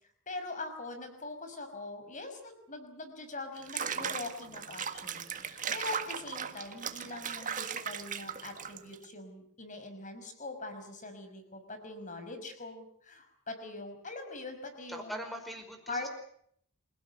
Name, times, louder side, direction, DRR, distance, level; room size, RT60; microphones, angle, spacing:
voice 1, 0.3-15.2 15.9-16.1, left 2 dB, 35° left, 7 dB, 5.8 m, -42 dB
Water / Bathtub (filling or washing), 3.6-9.1, right 7 dB, 35° right, 1.8 m, -37 dB
voice 2, 14.9-16.1, equal, ahead, 6 dB, 5.2 m, -41 dB
28.0 x 16.5 x 9.9 m, 0.67 s
head